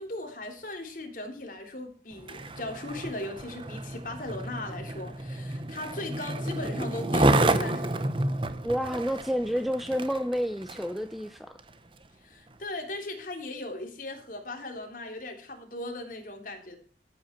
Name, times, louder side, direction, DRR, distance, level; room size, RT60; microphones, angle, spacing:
voice 1, 0.0-8.0 12.2-16.8, left 2 dB, 45° left, 3.4 m, -38 dB
Skateboard, 2.1-11.0 11.6-11.7, right 1 dB, 30° right, 0.9 m, -30 dB
voice 2, 8.6-11.6, equal, ahead, 0.6 m, -29 dB
14.0 x 8.4 x 4.5 m
head